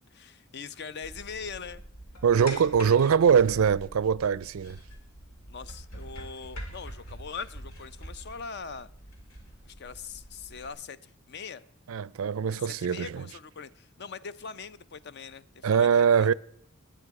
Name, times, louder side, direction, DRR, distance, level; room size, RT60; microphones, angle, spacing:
voice 1, 0.1-1.8 2.5-2.6 3.0-3.2 5.5-8.9 9.6-11.6 12.5-16.3, left 5 dB, 50° left, 0.6 m, -42 dB
sound 1, 1.0-10.7, equal, 80° left, 3.2 m, -45 dB
voice 2, 2.2-4.8 11.9-13.2 15.6-16.3, right 7 dB, 75° right, 0.4 m, -22 dB
20.5 x 9.2 x 4.8 m
head